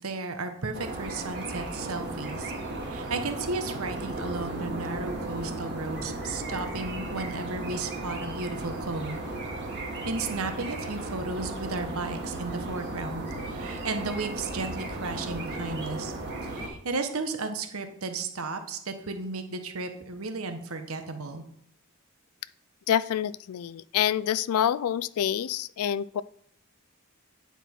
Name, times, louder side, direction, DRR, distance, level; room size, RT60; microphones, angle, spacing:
voice 1, 0.0-2.5 2.9-9.2 10.0-16.1 16.4-21.4, right 3 dB, 70° right, 7 dB, 1.1 m, -34 dB
sound 1, 0.7-16.7, right 2 dB, 55° right, 1.8 m, -35 dB
voice 2, 22.9-26.2, left 10 dB, 75° left, 17 dB, 0.3 m, -27 dB
9.2 x 5.9 x 4.4 m, 0.66 s
head